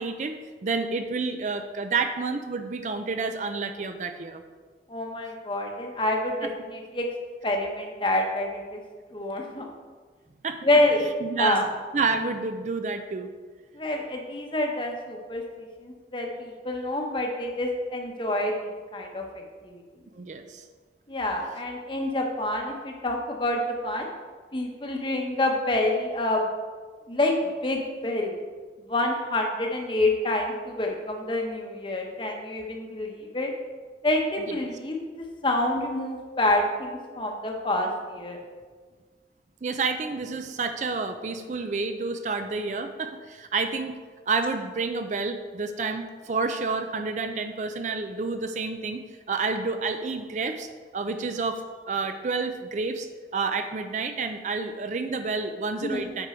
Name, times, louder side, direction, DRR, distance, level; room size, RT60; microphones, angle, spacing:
voice 1, 0.0-4.4 6.4-6.5 10.4-10.6 11.2-11.7 11.9-13.3 20.2-20.6 34.5-34.6 39.6-44.0 44.3-50.7 50.9-53.1 53.3-56.3, right 4 dB, 45° right, 7 dB, 0.4 m, -29 dB
voice 2, 4.9-7.1 7.4-8.8 9.1-9.7 10.6-11.7 13.7-19.2 19.6-19.8 21.1-24.1 24.5-26.4 27.1-27.3 27.6-28.3 28.9-33.5 34.0-35.0 35.4-38.4 55.8-56.1, left 1 dB, 30° left, 2 dB, 0.9 m, -27 dB
8.1 x 5.2 x 4.4 m, 1.5 s
head